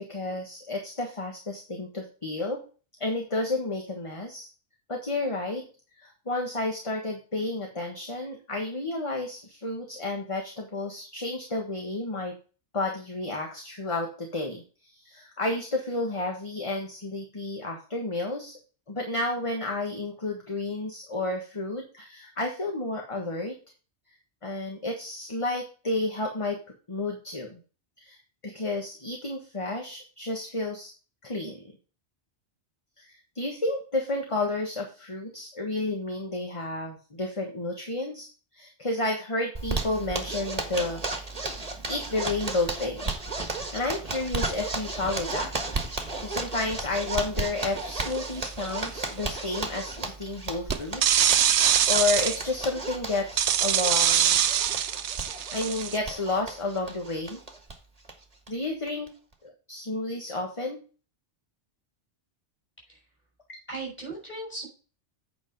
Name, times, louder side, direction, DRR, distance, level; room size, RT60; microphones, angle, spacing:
voice 1, 0.0-2.6 3.0-4.5 4.9-5.6 6.0-12.3 12.7-18.5 18.9-23.5 24.4-26.6 26.9-27.6 28.0-28.2 28.4-30.9 31.2-31.7 33.0-38.3 38.5-41.3 41.9-43.1 43.7-45.5 46.2-51.6 51.9-54.4 55.5-57.4 58.5-59.1 59.4-60.8, left 2 dB, 25° left, 2 dB, 1.4 m, -31 dB
Zipper (clothing), 39.6-57.7 58.1-58.2 58.5-58.6 58.9-59.3, right 3 dB, 35° right, 1.7 m, -34 dB
sound 1, 48.1-48.4 50.7-52.4 53.4-56.0, right 10 dB, 80° right, 0.9 m, -23 dB
voice 2, 63.7-64.7, right 2 dB, 10° left, -2 dB, 5.6 m, -37 dB
8.7 x 5.3 x 5.3 m, 0.36 s
omnidirectional pair, 1.2 m